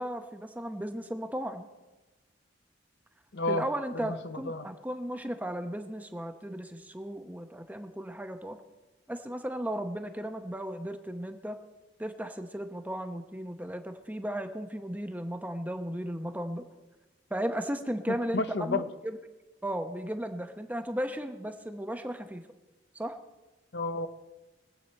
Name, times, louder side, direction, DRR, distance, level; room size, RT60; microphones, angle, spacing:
voice 1, 0.0-1.7 3.5-8.6 9.1-11.6 12.0-16.7 17.3-19.2 19.6-22.4 22.9-23.2, equal, 10° right, 7 dB, 0.8 m, -35 dB
voice 2, 3.3-3.6 4.2-4.7 18.1-18.9 23.7-24.1, left 2 dB, 60° left, 10 dB, 0.7 m, -31 dB
22.5 x 8.5 x 4.2 m, 1.2 s
head